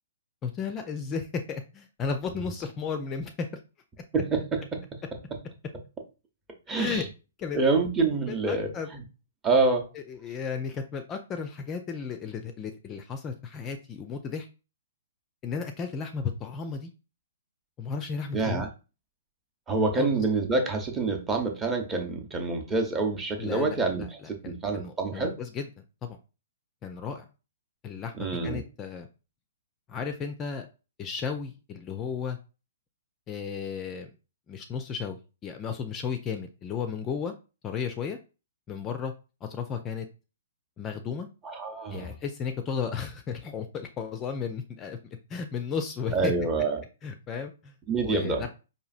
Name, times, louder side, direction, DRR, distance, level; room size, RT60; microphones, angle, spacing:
voice 1, 0.4-3.5 6.8-7.1 7.4-7.6 8.3-8.9 9.9-14.5 15.4-16.9 17.8-18.7 20.0-20.1 23.4-25.7 26.0-26.2 26.8-27.3 27.8-29.1 29.9-30.7 31.0-32.4 33.3-34.1 34.5-37.3 37.6-38.2 38.7-39.1 39.4-40.1 40.8-41.3 41.9-45.0 45.3-46.3 47.0-47.7 48.0-48.5, left 6 dB, 25° left, 7 dB, 0.4 m, -34 dB
voice 2, 4.1-4.8 6.7-7.0 7.5-9.0 9.4-9.9 18.3-18.7 19.7-25.3 28.2-28.6 41.4-42.1 46.1-46.8 47.9-48.5, right 3 dB, 15° right, 3 dB, 0.8 m, -27 dB
4.8 x 2.6 x 2.5 m, 0.32 s
figure-of-eight pair, 120°, 0 cm